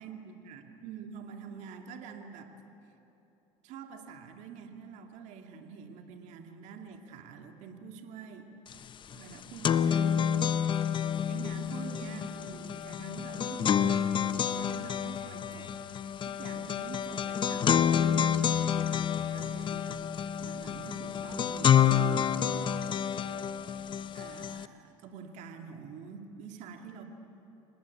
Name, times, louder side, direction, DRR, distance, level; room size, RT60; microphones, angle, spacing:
voice 1, 0.0-2.5 3.6-8.5 9.1-15.7 16.3-20.0 20.4-23.1 24.1-27.0, right 6 dB, 60° right, 4 dB, 2.4 m, -46 dB
sound 1, 8.7-8.8 9.1-24.7, left 8 dB, 35° left, 0.8 m, -29 dB
26.5 x 19.0 x 8.5 m, 3.0 s
supercardioid pair, 95°, 14 cm